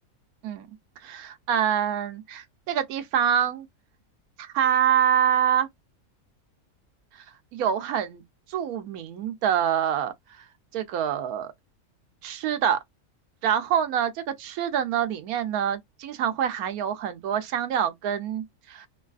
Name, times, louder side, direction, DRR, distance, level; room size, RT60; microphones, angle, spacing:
voice 1, 1.0-3.7 4.4-5.7 7.1-7.2 7.5-8.2 8.5-10.4 10.7-11.5 12.2-12.8 13.4-18.9, right 9 dB, 80° right, 1.1 m, -26 dB
3.0 x 2.3 x 2.3 m
omnidirectional pair, 1.5 m